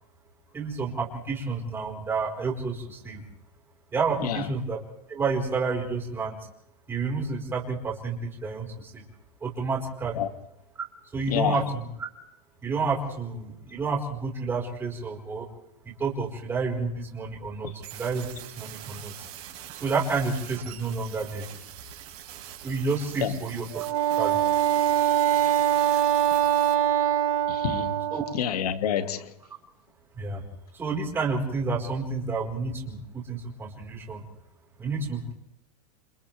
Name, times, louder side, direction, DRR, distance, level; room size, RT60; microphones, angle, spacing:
voice 1, 0.5-3.2 3.9-4.8 5.1-6.4 6.9-9.0 9.4-10.3 11.1-11.9 12.6-15.5 15.8-19.1 19.7-21.4 22.6-23.8 24.1-24.4 28.1-28.2 30.1-30.4 30.7-34.2 34.8-35.3, right 4 dB, 10° right, 4.9 m, -30 dB
voice 2, 11.3-11.6 17.6-17.7 23.2-23.3 27.5-28.0 28.3-29.3, left 9 dB, 75° left, 2.5 m, -28 dB
sound 1, 17.8-26.7, right 11 dB, 35° right, 5.6 m, -43 dB
Wind instrument woodwind instrument, 23.7-28.4, right 12 dB, 65° right, 2.2 m, -23 dB
28.5 x 28.0 x 3.6 m
supercardioid pair, 170°, 20 cm